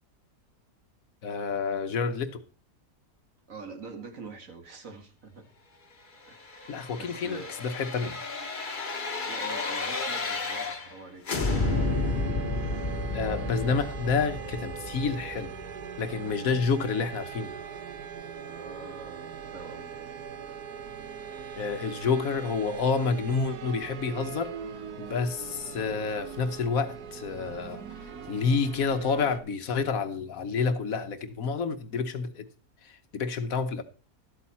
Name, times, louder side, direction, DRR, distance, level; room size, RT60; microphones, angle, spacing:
voice 1, 1.2-2.4 6.7-8.2 13.1-15.5 16.0-17.5 21.6-24.5 25.0-32.5 32.8-33.8, left 5 dB, 65° left, 1.2 m, -29 dB
voice 2, 3.5-5.5 6.2-7.6 9.2-11.2 18.4-19.9, right 4 dB, 55° right, 2.0 m, -45 dB
sound 1, 6.2-11.0 11.2-16.1 16.5-16.6, left 3 dB, 35° left, 1.3 m, -32 dB
sound 2, 11.5-29.4, right 7 dB, 75° right, 1.5 m, -41 dB
12.5 x 8.4 x 4.2 m
omnidirectional pair, 1.7 m